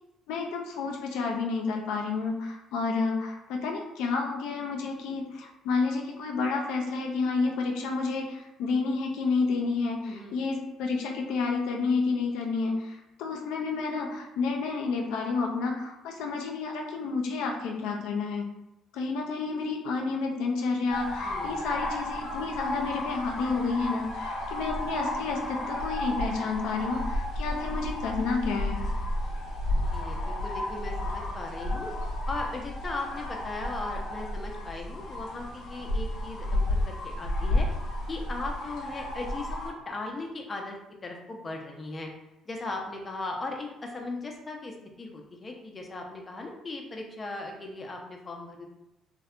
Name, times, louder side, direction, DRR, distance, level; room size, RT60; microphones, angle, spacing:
voice 1, 0.3-18.5 18.9-28.8, left 4 dB, 90° left, 1 dB, 0.3 m, -30 dB
voice 2, 10.0-10.4 21.2-21.6 29.7-31.9 32.3-37.7 38.1-42.1 42.5-48.7, left 2 dB, 30° left, 1 dB, 0.5 m, -38 dB
sound 1, 20.9-39.7, left 1 dB, 70° left, 0.8 m, -32 dB
2.6 x 2.1 x 2.4 m, 0.89 s
cardioid pair, 100°, 0 cm